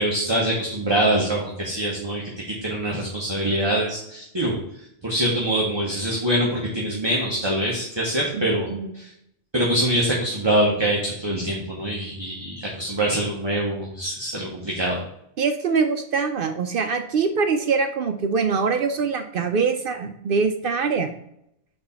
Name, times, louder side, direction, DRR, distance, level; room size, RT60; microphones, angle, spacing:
voice 1, 0.0-8.7 8.9-9.1 9.5-15.0, right 1 dB, 25° right, -3 dB, 1.0 m, -24 dB
voice 2, 15.4-21.1, right 5 dB, 60° right, 7 dB, 0.6 m, -23 dB
4.5 x 4.2 x 5.6 m, 0.76 s
omnidirectional pair, 1.2 m